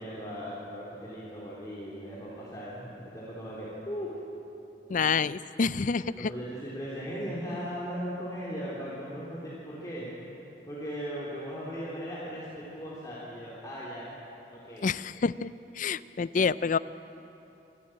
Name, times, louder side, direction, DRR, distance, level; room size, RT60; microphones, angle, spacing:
voice 1, 0.0-4.1 6.1-10.1 10.7-14.1 14.5-14.9, equal, 20° left, -8 dB, 3.4 m, -38 dB
voice 2, 4.9-6.3 14.8-16.8, left 5 dB, 45° left, 17 dB, 0.4 m, -28 dB
26.0 x 12.5 x 9.0 m, 3.0 s
head